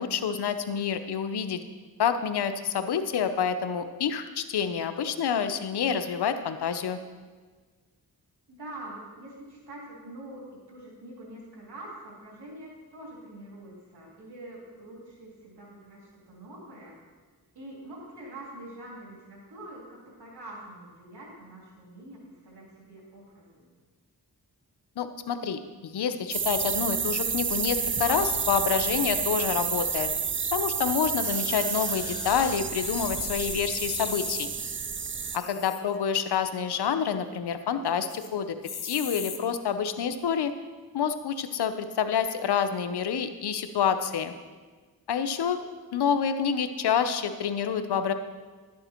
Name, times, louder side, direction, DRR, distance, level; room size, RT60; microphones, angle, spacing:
voice 1, 0.0-1.6 2.0-7.0 25.0-30.1 30.5-34.5 35.3-38.6 38.8-40.5 40.9-44.3 45.1-45.6 45.9-48.1, left 7 dB, 90° left, 10 dB, 0.7 m, -28 dB
voice 2, 8.5-17.0 17.5-23.7 35.3-35.5, right 1 dB, 90° right, -3 dB, 3.1 m, -45 dB
sound 1, 26.3-35.4, right 6 dB, 30° right, 0.5 m, -30 dB
sound 2, 31.2-34.5 35.2-36.0 36.4-36.5 36.7-36.8 37.2-37.6 38.1-38.3 38.6-39.4 40.1-40.2, left 7 dB, 75° left, 1.1 m, -38 dB
11.5 x 9.7 x 4.4 m, 1.4 s
cardioid pair, 45°, 38 cm